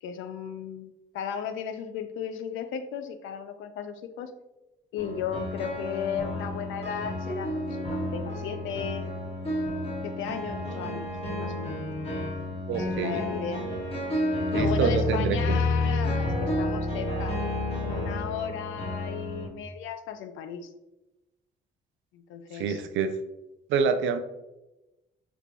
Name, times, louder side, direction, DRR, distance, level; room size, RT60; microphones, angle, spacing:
voice 1, 0.0-4.3 4.9-9.1 10.0-11.1 11.4-11.9 12.7-13.7 14.5-17.4 17.8-20.7 22.1-22.8, left 8 dB, 80° left, 9 dB, 0.4 m, -35 dB
sound 1, 5.0-19.5, left 1 dB, 30° left, 1.0 m, -30 dB
voice 2, 12.7-13.2 14.5-15.6 22.5-23.1 23.7-24.2, right 6 dB, 75° right, 9 dB, 0.4 m, -27 dB
3.4 x 3.3 x 2.4 m, 0.98 s
cardioid pair, 90°, 20 cm